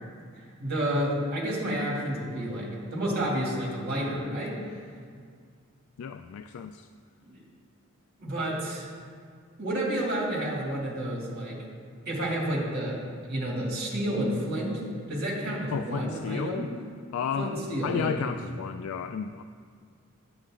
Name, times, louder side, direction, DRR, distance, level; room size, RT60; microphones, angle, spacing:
voice 1, 0.6-4.6 7.2-7.4 8.2-8.9 9.6-11.6 12.1-13.0 13.3-14.8 15.1-16.7 17.4-18.1, right 1 dB, 50° right, -4 dB, 2.4 m, -30 dB
voice 2, 6.0-6.9 15.7-16.7 17.1-17.6 17.8-19.4, left 6 dB, 75° left, 8 dB, 0.3 m, -32 dB
9.8 x 8.0 x 3.7 m, 2.1 s
head